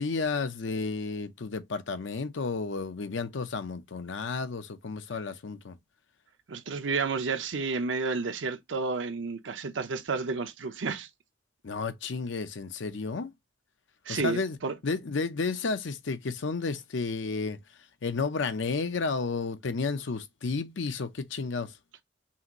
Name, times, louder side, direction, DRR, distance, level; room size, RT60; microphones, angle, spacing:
voice 1, 0.0-5.8 11.6-13.3 14.1-14.6 14.8-17.6 18.0-21.7, left 4 dB, 80° left, 0.6 m, -32 dB
voice 2, 6.5-11.1 14.1-14.7, right 4 dB, 85° right, 0.7 m, -31 dB
5.6 x 2.5 x 2.9 m
head